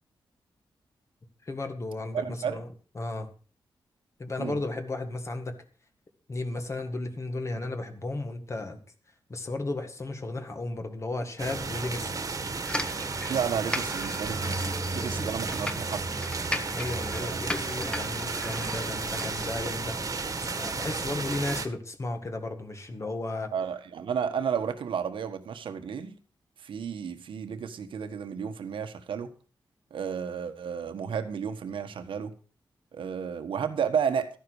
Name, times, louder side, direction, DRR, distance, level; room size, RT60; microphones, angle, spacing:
voice 1, 1.4-2.7 3.0-3.3 4.2-5.6 6.3-8.8 9.3-12.2 16.7-23.5, left 2 dB, 35° left, 6 dB, 1.9 m, -34 dB
voice 2, 2.1-2.6 4.4-4.6 13.3-16.1 17.2-17.4 23.5-26.1 26.6-29.3 29.9-32.3 32.9-34.3, right 7 dB, 80° right, 8 dB, 1.4 m, -32 dB
rain porch light medium heavy, 11.4-21.7, right 4 dB, 40° right, 1.6 m, -33 dB
sound 1, 12.6-19.8, left 1 dB, 10° left, 1.4 m, -37 dB
13.5 x 10.5 x 4.8 m, 0.37 s
wide cardioid pair, 110°, 9 cm